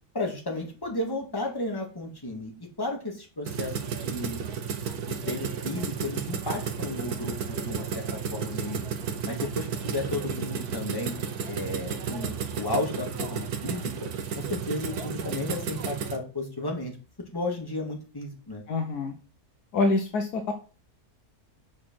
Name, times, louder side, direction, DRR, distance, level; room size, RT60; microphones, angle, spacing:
voice 1, 0.1-2.5 2.8-4.4 5.1-8.9 9.3-11.2 11.5-13.9 14.3-16.9 17.3-18.6, left 2 dB, 15° left, 0 dB, 2.0 m, -33 dB
sound 1, 3.5-16.2, right 6 dB, 75° right, 1.5 m, -33 dB
voice 2, 18.7-19.2 19.7-20.5, left 3 dB, 80° left, 3 dB, 1.5 m, -26 dB
6.6 x 5.0 x 6.0 m, 0.35 s
omnidirectional pair, 1.6 m